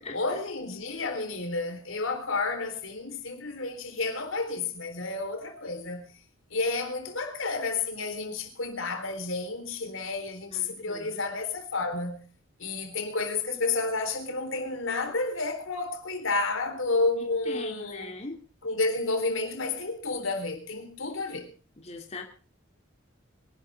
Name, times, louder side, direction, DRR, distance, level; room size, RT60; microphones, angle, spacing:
voice 1, 0.1-6.1 6.5-12.2 12.6-18.2 18.6-21.5, left 3 dB, 80° left, 3.9 m, -31 dB
voice 2, 10.5-11.2 17.5-18.4 21.8-22.2, left 3 dB, 30° left, 2.6 m, -40 dB
24.5 x 12.0 x 3.6 m
head